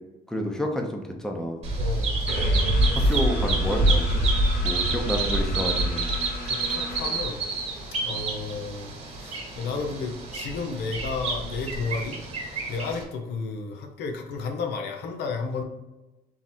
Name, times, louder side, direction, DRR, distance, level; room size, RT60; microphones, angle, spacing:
voice 1, 0.3-1.6 2.9-4.2 4.6-6.1 8.1-8.2, equal, 5° left, 2 dB, 0.7 m, -30 dB
Bird vocalization bird call bird song, 1.6-13.0, right 2 dB, 40° right, 1.2 m, -26 dB
voice 2, 1.8-2.2 2.9-3.2 6.4-7.4 8.0-8.9 9.2-12.2 12.7-15.6, left 4 dB, 80° left, 3 dB, 0.7 m, -32 dB
sound 1, 2.3-7.9, left 3 dB, 65° left, 1.1 m, -37 dB
3.8 x 3.0 x 4.3 m, 1.0 s
cardioid pair, 110°, 17 cm